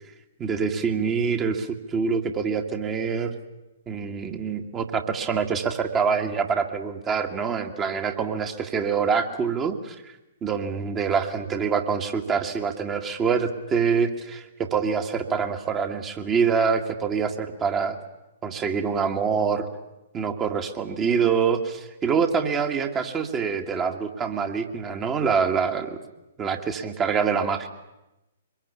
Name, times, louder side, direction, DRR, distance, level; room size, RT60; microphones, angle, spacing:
voice 1, 0.4-3.4 3.9-10.1 10.4-18.0 18.4-19.7 20.1-26.0 26.4-27.7, right 6 dB, 20° right, 5 dB, 1.9 m, -25 dB
24.5 x 21.5 x 8.6 m, 0.97 s
figure-of-eight pair, 115°, 0 cm